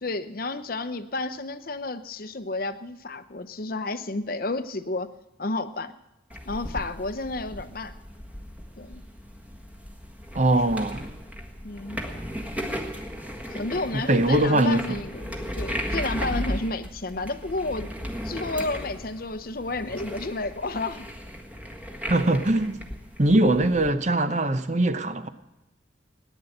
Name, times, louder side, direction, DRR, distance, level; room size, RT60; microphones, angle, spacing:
voice 1, 0.0-5.1 5.4-5.9 6.5-7.9 8.8-9.0 11.6-12.0 13.5-17.9 18.2-21.1, left 2 dB, 50° left, 0.7 m, -31 dB
sound 1, 6.3-23.9, equal, 10° right, 1.5 m, -36 dB
voice 2, 10.3-11.0 13.9-15.0 22.1-22.8 23.2-25.3, right 1 dB, 35° right, 0.8 m, -22 dB
18.0 x 10.0 x 7.9 m
head